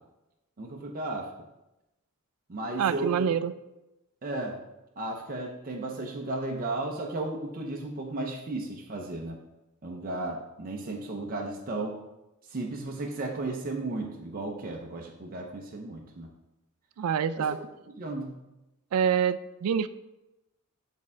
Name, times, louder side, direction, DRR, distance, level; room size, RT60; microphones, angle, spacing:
voice 1, 0.6-1.3 2.5-3.3 4.2-4.6 5.0-9.4 9.8-12.0 12.5-16.3 17.4-17.5 18.0-18.4, right 2 dB, 40° right, 1 dB, 0.6 m, -34 dB
voice 2, 2.8-3.5 17.0-17.6 18.9-19.9, right 8 dB, 90° right, 14 dB, 0.3 m, -26 dB
6.5 x 3.6 x 4.2 m, 0.96 s
head